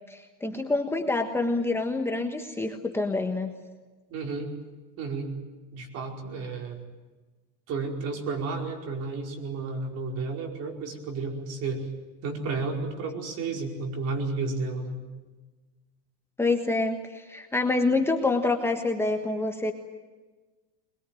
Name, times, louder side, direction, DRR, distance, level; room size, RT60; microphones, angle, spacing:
voice 1, 0.1-3.5 16.4-19.7, left 3 dB, 5° left, 4 dB, 1.3 m, -27 dB
voice 2, 4.1-4.5 5.0-5.3 5.7-6.8 7.7-11.9 12.2-15.0, right 3 dB, 45° right, 3 dB, 5.0 m, -32 dB
23.0 x 21.5 x 9.1 m, 1.3 s
supercardioid pair, 140°, 34 cm